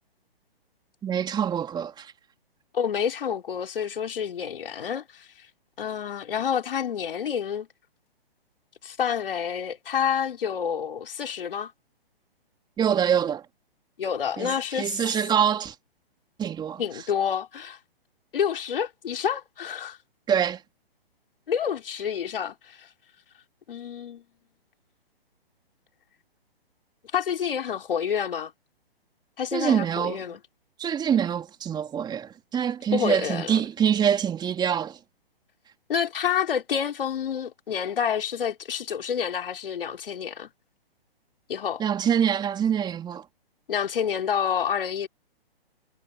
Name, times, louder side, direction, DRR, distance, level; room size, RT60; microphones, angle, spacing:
voice 1, 1.0-2.1 12.8-13.4 14.4-14.5 14.7-15.7 16.4-16.8 20.3-20.6 29.5-30.2 30.8-35.0 41.8-43.2, right 8 dB, 15° right, 3.1 m, -25 dB
voice 2, 2.7-5.3 5.8-7.7 8.8-11.7 14.0-14.9 16.8-17.8 18.3-20.0 21.5-22.9 23.7-24.2 27.1-28.5 29.4-30.4 32.9-33.6 35.9-40.5 41.5-41.8 43.7-45.1, left 8 dB, 65° left, 3.7 m, -28 dB
hypercardioid pair, 135°, 30 cm